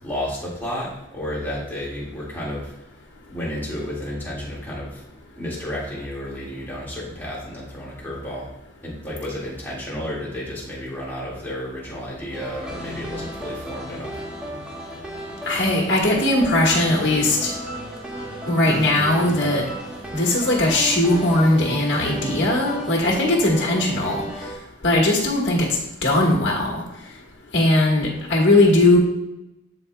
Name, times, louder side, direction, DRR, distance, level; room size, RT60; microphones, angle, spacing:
voice 1, 0.0-2.7 3.2-5.0 5.4-8.5 8.8-14.2, equal, 10° left, -6 dB, 2.0 m, -32 dB
sound 1, 12.3-24.6, right 1 dB, 5° right, 1.1 m, -34 dB
voice 2, 15.4-17.5 18.5-19.6 20.1-24.2 24.8-25.7 26.0-26.8 27.5-29.0, left 1 dB, 60° left, -3 dB, 1.5 m, -19 dB
12.5 x 4.2 x 2.3 m, 0.91 s
head